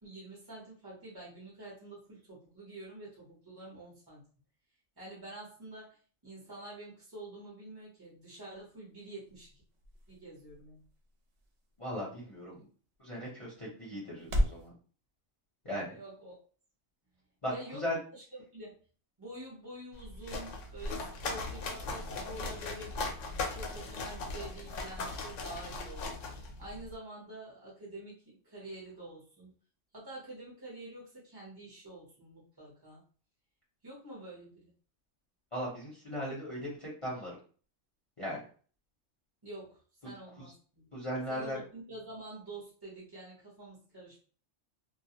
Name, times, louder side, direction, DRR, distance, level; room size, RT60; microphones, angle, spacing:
voice 1, 0.0-4.3 5.0-6.0 6.2-9.6 10.1-10.8 15.9-16.4 17.5-18.2 18.5-18.8 19.2-23.0 23.5-29.5 29.9-33.0 33.8-34.7 39.4-40.9 41.3-44.2, right 2 dB, 25° right, -6 dB, 0.6 m, -47 dB
sound 1, 8.4-14.7, equal, 65° right, 0.8 m, -39 dB
voice 2, 11.8-12.6 13.0-14.7 15.6-15.9 17.4-17.5 17.8-17.9 35.5-37.3 38.2-38.4 40.0-40.1 40.9-41.6, equal, 30° left, -6 dB, 0.7 m, -37 dB
sound 2, 19.9-26.9, left 3 dB, 80° left, 0.9 m, -39 dB
2.3 x 2.1 x 2.8 m, 0.41 s
omnidirectional pair, 1.3 m